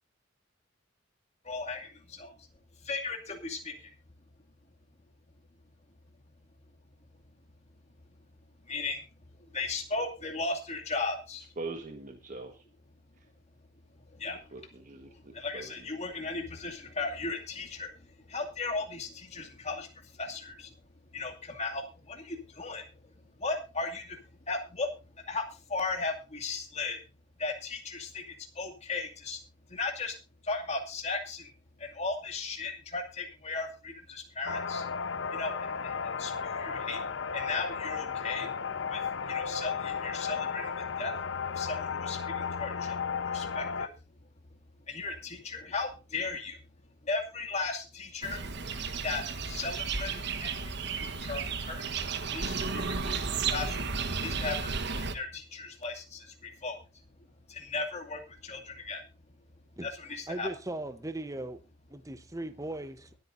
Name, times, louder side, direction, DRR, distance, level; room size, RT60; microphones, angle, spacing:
voice 1, 1.4-2.3 2.8-3.9 8.6-9.1 9.4-11.5 14.1-14.6 15.1-20.7 21.1-24.2 24.5-24.9 25.2-27.0 27.4-29.4 29.7-30.2 30.4-31.5 31.8-34.8 35.3-37.1 37.3-38.5 38.9-39.0 39.3-41.2 41.5-43.0 43.2-43.9 44.9-46.6 47.0-48.4 49.0-51.8 52.3-53.1 53.5-53.9 54.2-56.8 57.5-59.0 59.8-60.5, left 3 dB, 35° left, 2 dB, 2.4 m, -36 dB
voice 2, 11.6-12.6 14.5-15.7, right 3 dB, 40° right, 4 dB, 1.5 m, -42 dB
sound 1, 34.4-43.9, left 6 dB, 70° left, 0.9 m, -34 dB
sound 2, 48.2-55.2, right 5 dB, 60° right, 1.3 m, -33 dB
voice 3, 60.3-61.6 61.9-63.1, right 1 dB, 15° right, 11 dB, 0.9 m, -38 dB
23.0 x 9.0 x 2.6 m, 0.30 s
head